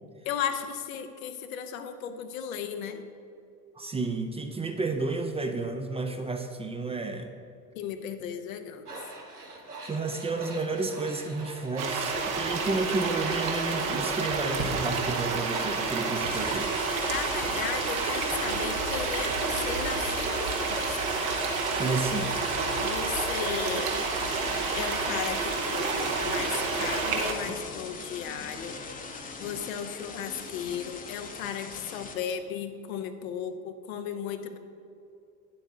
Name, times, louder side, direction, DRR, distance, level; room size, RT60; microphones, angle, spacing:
voice 1, 0.2-3.0 7.7-8.9 17.1-21.0 22.8-23.9 24.7-28.8 29.2-34.6, left 8 dB, 65° left, 7 dB, 0.8 m, -35 dB
voice 2, 3.8-7.3 9.8-16.7 21.8-22.4 27.5-27.6, right 3 dB, 15° right, 5 dB, 0.5 m, -31 dB
Tools, 8.8-16.8, right 2 dB, 90° right, 1.1 m, -43 dB
sound 1, 11.8-27.3, right 4 dB, 65° right, 1.3 m, -29 dB
sound 2, 16.3-32.2, left 4 dB, 20° left, 0.8 m, -41 dB
9.1 x 8.0 x 3.7 m, 2.6 s
figure-of-eight pair, 65°, 44 cm